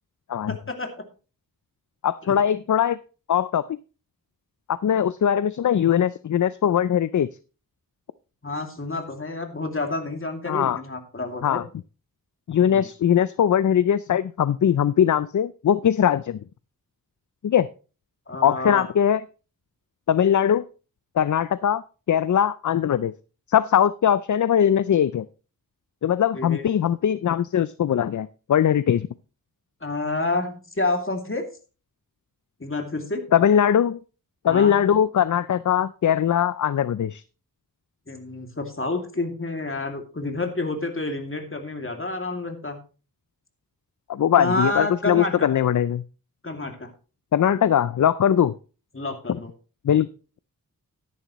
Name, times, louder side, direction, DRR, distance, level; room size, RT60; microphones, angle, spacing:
voice 1, 0.5-0.9 2.2-2.4 8.4-11.6 12.7-12.9 18.3-18.8 26.3-26.6 29.8-31.5 32.6-33.2 34.5-34.8 38.1-42.8 44.4-45.5 46.4-46.9 48.9-49.5, left 2 dB, 35° left, 4 dB, 2.6 m, -29 dB
voice 2, 2.0-3.0 3.3-3.8 4.7-7.3 10.5-10.8 11.4-11.6 12.5-16.4 17.4-17.7 18.4-19.2 20.1-20.6 21.2-21.8 22.1-23.1 23.5-25.2 26.0-29.1 33.3-34.0 34.4-37.2 44.1-46.0 47.3-48.5 49.8-50.1, left 9 dB, 55° left, 16 dB, 0.5 m, -21 dB
12.5 x 10.5 x 3.1 m, 0.34 s
wide cardioid pair, 65°, 36 cm